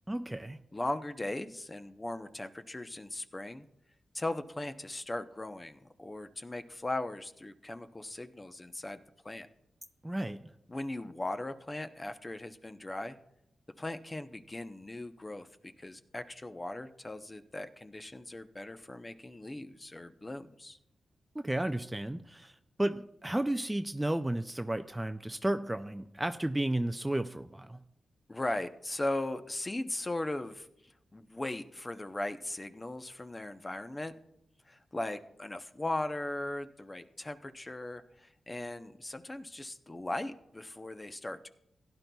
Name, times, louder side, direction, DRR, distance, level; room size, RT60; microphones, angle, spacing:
voice 1, 0.1-0.6 10.0-10.5 21.3-27.8, right 1 dB, 10° right, 9 dB, 0.4 m, -33 dB
voice 2, 0.7-3.7 4.1-9.0 9.2-9.5 10.7-13.2 13.8-20.8 28.3-34.1 34.7-41.5, left 2 dB, 25° left, 9 dB, 0.7 m, -38 dB
16.5 x 10.5 x 2.3 m, 0.82 s
cardioid pair, 80°, 0 cm